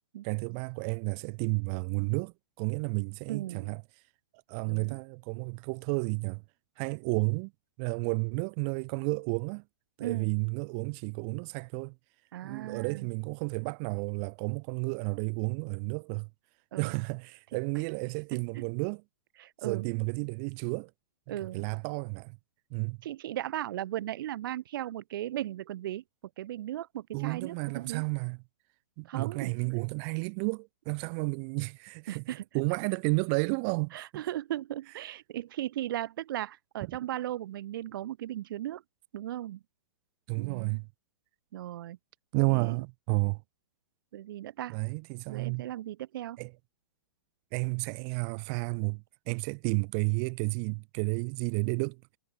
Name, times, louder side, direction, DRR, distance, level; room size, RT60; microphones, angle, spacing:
voice 1, 0.2-3.8 4.5-6.4 6.8-7.5 7.8-9.6 10.0-11.9 12.4-16.3 16.8-19.0 19.6-20.9 21.4-22.4 22.7-23.0 27.1-28.4 29.0-32.2 32.5-34.1 36.9-37.0 40.3-40.9 42.3-43.4 44.7-45.7 46.4-46.5 47.5-52.0, right 39 dB, 30° right, 0.8 m, -32 dB
voice 2, 3.3-3.7 4.7-5.0 10.0-10.3 12.3-13.1 16.7-17.0 18.6-18.7 19.4-19.9 21.3-21.6 23.0-26.0 26.4-28.0 29.1-29.6 32.1-32.4 33.9-38.8 39.1-39.6 40.4-40.8 41.5-42.0 42.5-42.8 44.1-44.8 45.3-46.4, right 13 dB, 55° right, 1.6 m, -37 dB
hypercardioid pair, 155°, 13 cm